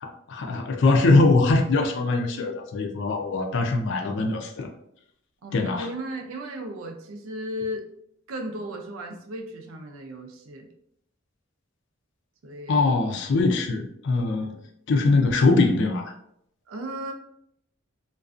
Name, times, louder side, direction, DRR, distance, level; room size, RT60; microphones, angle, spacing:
voice 1, 0.0-4.7 5.5-5.9 12.7-14.5 14.9-16.1, left 3 dB, 60° left, 4 dB, 0.4 m, -22 dB
voice 2, 5.4-7.9 8.3-10.7 12.4-12.9 14.4-14.7 16.7-17.1, equal, 90° right, 4 dB, 0.5 m, -35 dB
2.4 x 2.2 x 2.4 m, 0.73 s
head